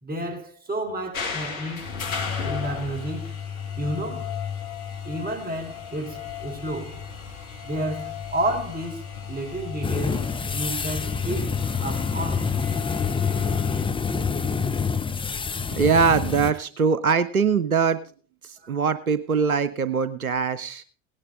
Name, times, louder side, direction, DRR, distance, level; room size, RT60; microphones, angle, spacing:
voice 1, 0.0-1.9 2.4-3.3 3.8-4.3 5.0-7.0 7.6-11.6 11.8-12.5 18.6-18.7, right 1 dB, 20° right, 4.1 m, -31 dB
sound 1, 1.1-13.8, left 7 dB, 75° left, 1.7 m, -34 dB
sound 2, 9.8-16.5, left 5 dB, 10° left, 0.8 m, -27 dB
voice 2, 15.8-18.0 18.5-20.8, right 5 dB, 90° right, 0.7 m, -22 dB
17.5 x 11.0 x 3.8 m
figure-of-eight pair, 65°, 42 cm